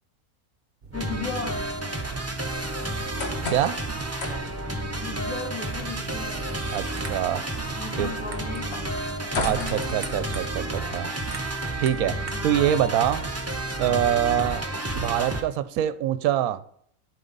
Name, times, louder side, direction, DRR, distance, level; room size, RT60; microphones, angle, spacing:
sound 1, 0.8-13.6, right 4 dB, 45° right, 1.0 m, -45 dB
voice 1, 0.9-1.6 5.0-6.4 7.8-8.7 9.3-9.9 12.3-12.6, left 4 dB, 70° left, -4 dB, 3.1 m, -35 dB
sound 2, 0.9-15.4, right 1 dB, 15° right, 0.5 m, -31 dB
sound 3, 2.9-10.7, left 3 dB, 45° left, 1.4 m, -38 dB
voice 2, 6.7-7.4 8.0-8.1 9.4-11.1 11.8-12.1 12.4-13.3 13.8-14.6 14.9-16.6, right 11 dB, 75° right, 13 dB, 1.1 m, -24 dB
11.5 x 5.3 x 4.0 m, 0.63 s
omnidirectional pair, 1.6 m